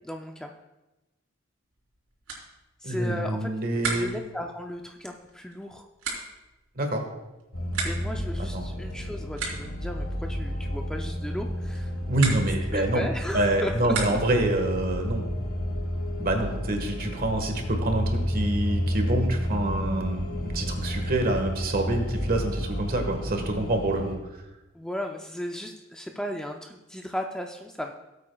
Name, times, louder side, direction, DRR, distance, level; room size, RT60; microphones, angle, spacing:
voice 1, 0.0-0.5 2.8-3.5 3.9-5.9 7.8-11.9 12.7-14.2 20.9-21.1 24.7-27.9, equal, 5° left, 2 dB, 0.5 m, -35 dB
sound 1, 1.7-14.5, right 4 dB, 80° right, 3.5 m, -39 dB
voice 2, 2.8-4.1 6.8-7.0 8.4-8.7 12.1-13.1 13.3-15.3 16.2-24.1, right 1 dB, 45° right, 4 dB, 1.5 m, -26 dB
sound 2, 7.5-24.1, equal, 70° left, 2.1 m, -31 dB
17.5 x 8.4 x 2.3 m, 1.0 s
head